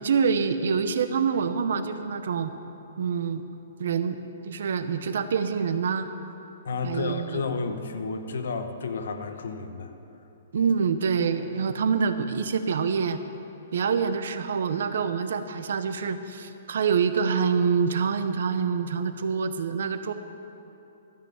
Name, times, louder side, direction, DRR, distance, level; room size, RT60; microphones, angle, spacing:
voice 1, 0.0-2.5 3.0-3.4 3.8-4.2 4.4-6.1 6.8-7.4 10.5-13.2 13.7-20.1, right 6 dB, 60° right, 10 dB, 0.7 m, -26 dB
voice 2, 6.6-9.9, left 4 dB, 70° left, 7 dB, 0.9 m, -31 dB
13.0 x 5.8 x 8.6 m, 3.0 s
hypercardioid pair, 180°, 0 cm